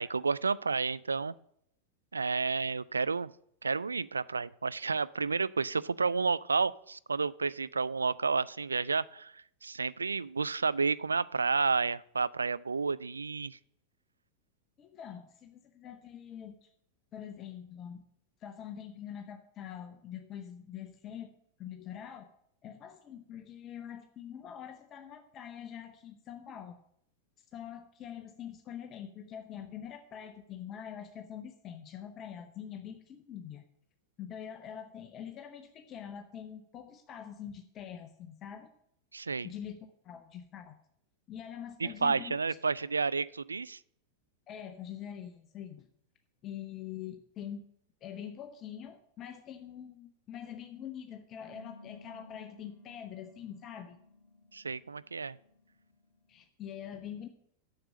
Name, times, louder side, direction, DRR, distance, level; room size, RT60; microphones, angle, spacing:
voice 1, 0.0-1.3 2.1-3.3 3.6-13.6 39.1-39.5 41.8-43.8 54.5-55.4, right 4 dB, 75° right, 18 dB, 0.3 m, -31 dB
voice 2, 14.8-16.7 17.1-18.0 18.4-21.3 21.6-22.3 22.6-26.8 27.5-33.6 34.2-38.7 39.4-40.8 41.3-42.4 44.5-45.9 46.4-47.6 48.0-54.0 56.3-57.3, left 9 dB, 30° left, 7 dB, 0.8 m, -44 dB
sound 1, 51.4-56.4, left 2 dB, 15° left, 2.6 m, -56 dB
7.8 x 6.7 x 7.4 m, 0.71 s
figure-of-eight pair, 90°, 0 cm